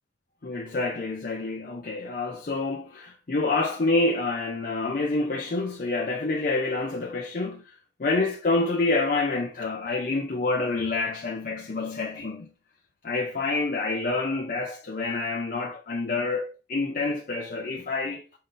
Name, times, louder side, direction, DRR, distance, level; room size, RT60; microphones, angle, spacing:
voice 1, 0.4-12.5 13.0-18.2, left 3 dB, 50° left, 0.5 m, -27 dB
5.3 x 3.7 x 2.6 m
head